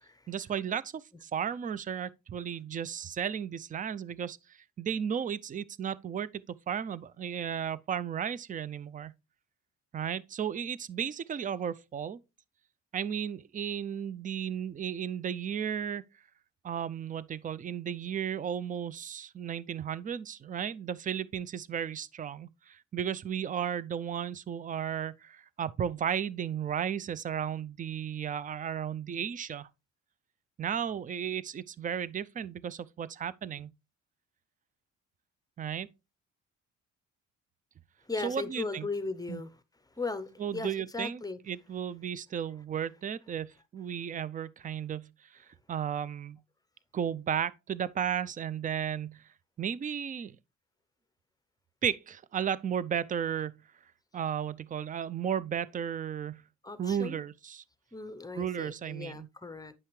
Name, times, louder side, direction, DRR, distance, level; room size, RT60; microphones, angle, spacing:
voice 1, 0.3-9.1 9.9-12.2 12.9-16.0 16.6-29.7 30.6-33.7 35.6-35.9 38.2-38.9 39.3-39.4 40.4-46.4 46.9-49.2 49.6-50.4 51.8-53.6 54.1-56.4 56.8-57.6 58.3-59.3, right 8 dB, 25° right, 0.4 m, -34 dB
voice 2, 38.1-39.5 40.0-41.4 56.6-57.2 57.9-59.7, left 3 dB, 10° left, 0.7 m, -37 dB
9.4 x 5.6 x 3.1 m
cardioid pair, 90°, 30 cm